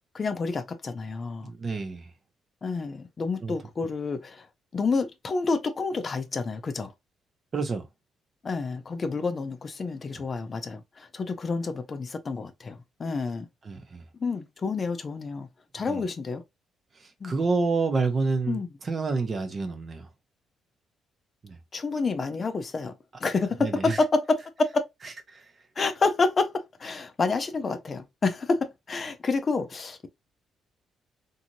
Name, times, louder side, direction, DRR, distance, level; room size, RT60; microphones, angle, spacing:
voice 1, 0.1-1.5 2.6-4.5 4.7-6.9 8.4-12.7 13.0-13.5 14.2-15.5 15.7-16.4 17.2-17.4 18.5-18.7 21.7-22.9 23.2-24.4 24.7-24.8 25.8-26.5 26.8-30.1, left 4 dB, 40° left, 0.5 m, -28 dB
voice 2, 1.4-2.1 3.4-3.5 7.5-7.8 13.6-14.0 15.9-16.0 17.2-20.1 21.4-21.6 23.6-24.0 25.3-25.4, right 4 dB, 40° right, 0.7 m, -28 dB
2.7 x 2.5 x 2.8 m
cardioid pair, 90°, 0 cm